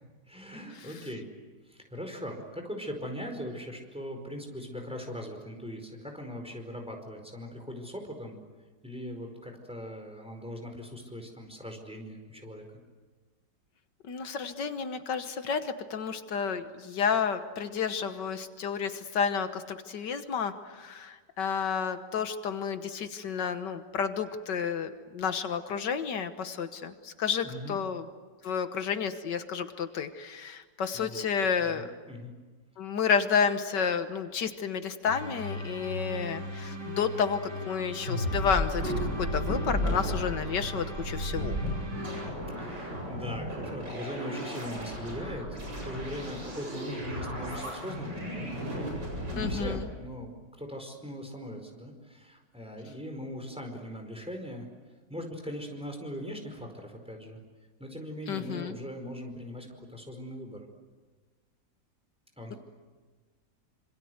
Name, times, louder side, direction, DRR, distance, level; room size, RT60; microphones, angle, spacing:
voice 1, 0.3-1.3 1.6-8.4 8.8-12.7 27.4-27.8 30.9-31.2 31.6-32.3 42.6-45.6 45.8-49.0 49.3-54.7 55.1-57.4 57.8-60.6 62.4-62.6, equal, 5° right, 3 dB, 4.8 m, -40 dB
voice 2, 14.0-28.0 28.4-31.9 32.8-38.9 39.2-41.6 49.4-49.9 58.3-58.7, left 6 dB, 80° left, 9 dB, 1.8 m, -31 dB
sound 1, 35.0-42.3, equal, 65° right, 4.1 m, -38 dB
sound 2, 38.1-49.7, equal, 85° right, 8.5 m, -34 dB
26.5 x 26.5 x 8.0 m, 1.3 s
omnidirectional pair, 1.9 m